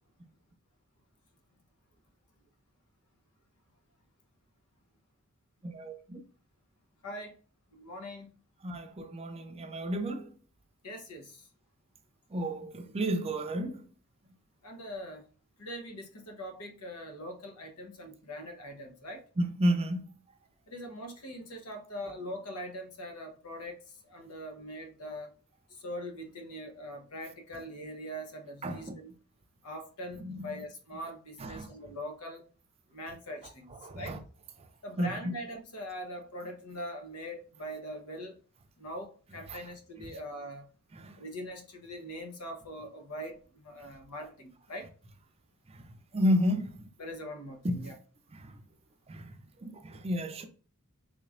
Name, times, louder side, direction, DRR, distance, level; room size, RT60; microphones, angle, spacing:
voice 1, 5.6-6.2 8.6-10.3 12.3-13.8 19.4-20.1 28.6-28.9 30.2-30.5 31.4-31.7 33.8-34.2 35.0-35.3 40.9-41.1 46.1-46.7 47.6-47.9 49.1-49.3 49.6-50.5, equal, 25° right, 0.4 m, -31 dB
voice 2, 7.0-7.3 7.7-8.3 10.8-11.5 14.6-15.3 15.6-19.2 20.7-23.8 24.0-25.3 25.8-29.1 29.6-32.4 32.9-34.2 34.8-38.3 38.8-40.7 41.2-44.9 47.0-47.9, equal, 85° left, 0.9 m, -42 dB
3.6 x 3.1 x 2.4 m
head